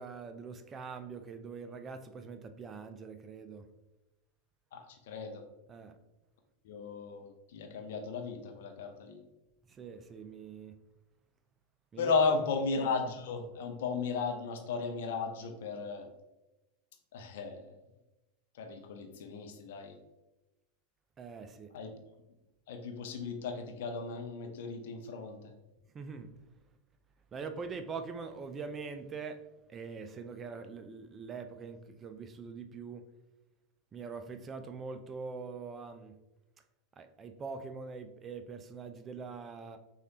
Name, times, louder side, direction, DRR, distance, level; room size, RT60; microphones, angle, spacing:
voice 1, 0.0-3.7 5.7-6.0 9.7-10.7 11.9-12.4 21.2-21.7 25.9-26.3 27.3-29.4 29.7-33.0 33.9-36.1 37.0-39.8, right 5 dB, 25° right, 8 dB, 0.4 m, -43 dB
voice 2, 4.7-5.4 6.6-9.2 12.0-16.1 17.1-17.7 18.6-20.0 21.7-21.9 22.7-25.5, left 4 dB, 60° left, 5 dB, 0.6 m, -35 dB
6.3 x 2.4 x 2.8 m, 1.0 s
figure-of-eight pair, 85°, 0 cm